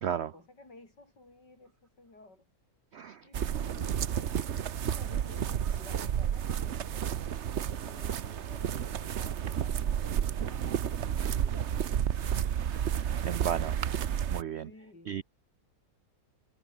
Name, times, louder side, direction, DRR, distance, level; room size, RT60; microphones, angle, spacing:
voice 1, 0.2-2.5 3.2-12.5 14.6-15.2, left 2 dB, 85° left, 7.0 m, -54 dB
voice 2, 2.9-3.3 11.2-11.4 12.7-13.8 14.3-14.7 15.1-15.2, right 9 dB, 75° right, 0.6 m, -35 dB
sound 1, 3.3-14.4, right 9 dB, 50° right, 1.0 m, -31 dB
omnidirectional pair, 1.8 m